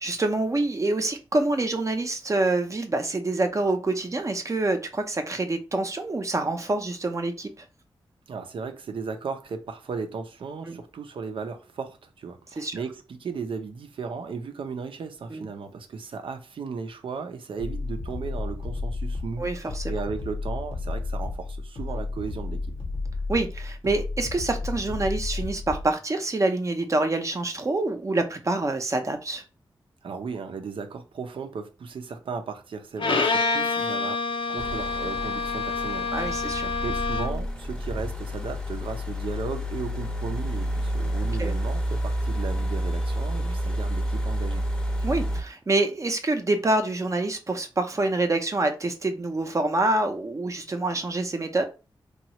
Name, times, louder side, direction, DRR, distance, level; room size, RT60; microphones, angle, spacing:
voice 1, 0.0-7.6 10.7-10.8 12.6-12.7 15.3-15.5 19.4-19.8 23.3-29.4 33.0-33.2 36.1-36.7 41.4-41.5 43.4-43.6 45.0-51.6, right 2 dB, 35° right, 0.5 m, -26 dB
voice 2, 8.3-22.7 30.0-34.2 34.5-44.6, right 5 dB, 85° right, 0.5 m, -36 dB
sound 1, 17.6-25.9, left 3 dB, 90° left, 0.9 m, -32 dB
Bowed string instrument, 33.0-37.5, left 4 dB, 75° left, 0.5 m, -27 dB
sound 2, 34.6-45.4, equal, 10° left, 0.6 m, -29 dB
3.0 x 2.3 x 2.8 m
wide cardioid pair, 80°, 9 cm